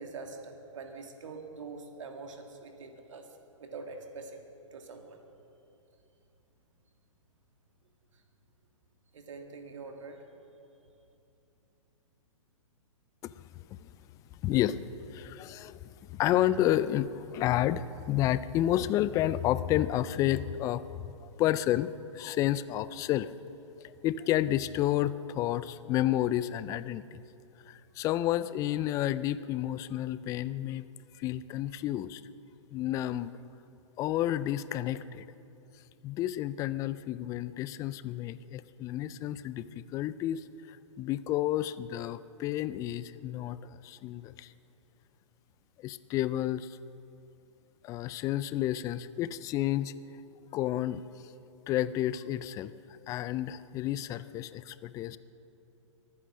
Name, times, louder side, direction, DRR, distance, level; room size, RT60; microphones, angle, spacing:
voice 1, 0.0-3.3 3.6-5.2 8.1-8.2 9.1-10.3, right 4 dB, 70° right, 4 dB, 2.4 m, -44 dB
voice 2, 14.4-14.8 15.1-15.8 16.1-20.8 21.2-23.3 23.8-27.2 27.7-30.9 31.1-32.2 32.7-33.3 34.0-35.2 36.0-43.6 43.8-44.5 45.8-46.8 47.8-49.9 50.5-51.0 51.7-52.7 53.1-55.2, left 13 dB, 20° left, 16 dB, 0.4 m, -30 dB
23.5 x 9.5 x 6.4 m, 2.8 s
hypercardioid pair, 125°, 17 cm